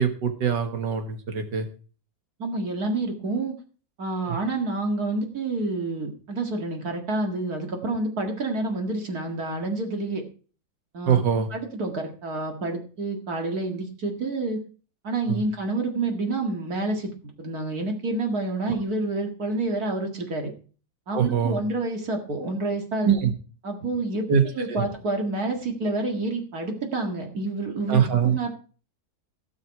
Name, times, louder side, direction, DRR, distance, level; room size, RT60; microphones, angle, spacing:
voice 1, 0.0-1.7 4.3-4.4 11.1-11.5 15.3-15.4 18.7-18.8 21.1-21.6 23.0-23.3 24.3-24.4 24.7-24.8 27.9-28.4, right 7 dB, 80° right, 7 dB, 2.1 m, -23 dB
voice 2, 2.4-3.5 4.0-10.2 10.9-11.2 11.5-14.6 15.0-17.1 17.4-20.5 21.1-23.1 23.6-28.5, right 2 dB, 60° right, 3 dB, 2.4 m, -28 dB
17.0 x 6.5 x 4.7 m, 0.40 s
omnidirectional pair, 1.9 m